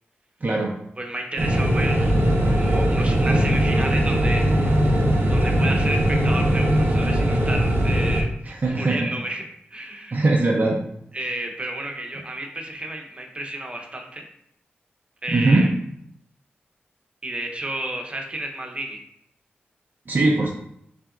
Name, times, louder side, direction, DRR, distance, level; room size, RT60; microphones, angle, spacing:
voice 1, 0.4-0.7 8.5-9.1 10.1-10.8 15.3-15.7 20.1-20.5, right 2 dB, 50° right, -2 dB, 0.6 m, -20 dB
voice 2, 1.0-2.1 2.5-4.9 5.3-9.4 9.7-10.2 11.1-14.2 15.2-15.7 17.2-19.0, right 1 dB, 30° right, 2 dB, 0.9 m, -31 dB
sound 1, 1.4-8.2, right 1 dB, 75° right, 0.9 m, -20 dB
5.8 x 3.4 x 2.5 m, 0.73 s
wide cardioid pair, 70°, 4 cm